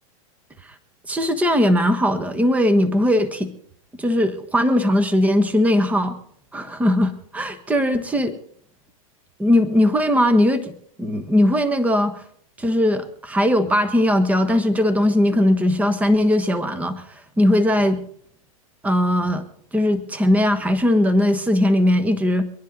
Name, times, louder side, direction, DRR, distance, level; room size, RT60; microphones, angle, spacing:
voice 1, 1.1-3.5 4.0-6.2 6.5-8.3 9.4-10.7 11.0-12.2 12.6-18.0 18.8-19.4 19.7-22.4, left 1 dB, 10° right, 9 dB, 1.3 m, -19 dB
24.5 x 10.5 x 4.1 m, 0.65 s
hypercardioid pair, 115°, 18 cm